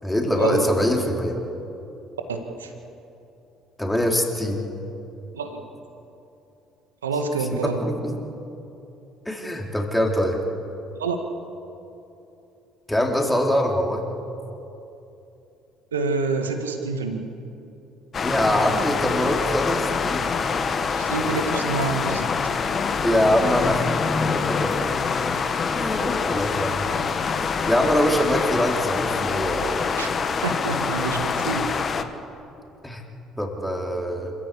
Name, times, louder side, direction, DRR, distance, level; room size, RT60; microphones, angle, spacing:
voice 1, 0.0-1.4 3.8-4.6 7.6-8.2 9.3-10.4 12.9-14.1 18.2-20.3 23.0-23.8 24.2-24.8 25.7-29.9 32.8-33.0 33.4-34.3, equal, 10° left, 1 dB, 4.1 m, -24 dB
voice 2, 2.3-2.7 5.3-5.6 7.0-7.8 11.0-11.2 15.9-17.2 21.0-22.3 25.2-25.4 30.0-30.1 30.4-31.7, right 4 dB, 90° right, 5 dB, 1.9 m, -27 dB
sound 1, 18.1-32.0, left 5 dB, 40° left, 1.5 m, -25 dB
26.5 x 15.0 x 8.6 m, 2.8 s
hypercardioid pair, 55°, 0 cm